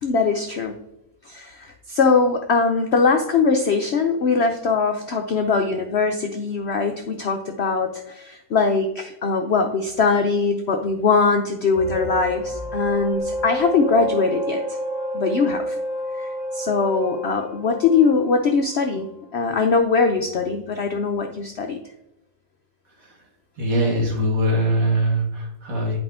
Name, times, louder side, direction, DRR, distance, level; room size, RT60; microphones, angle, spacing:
voice 1, 0.0-0.8 1.3-14.8 15.1-15.8 16.1-21.8, left 4 dB, 65° left, 4 dB, 0.6 m, -21 dB
sound 1, 11.7-19.0, right 1 dB, 15° left, 1.6 m, -29 dB
voice 2, 23.6-26.0, equal, 55° right, 0 dB, 2.1 m, -22 dB
8.5 x 5.0 x 3.6 m, 0.88 s
omnidirectional pair, 1.8 m